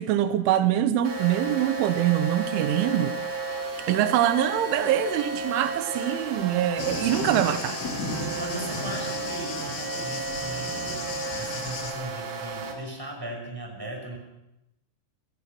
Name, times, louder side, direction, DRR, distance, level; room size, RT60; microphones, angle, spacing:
voice 1, 0.0-3.2 3.9-7.8, right 11 dB, 90° right, 3.5 m, -24 dB
sound 1, 1.0-12.7, right 4 dB, 65° right, 5.1 m, -33 dB
Thunder, 6.8-11.9, left 3 dB, 90° left, 5.0 m, -34 dB
voice 2, 8.4-11.0 11.4-14.2, right 1 dB, 5° right, 5.2 m, -37 dB
28.0 x 16.0 x 6.0 m
omnidirectional pair, 5.4 m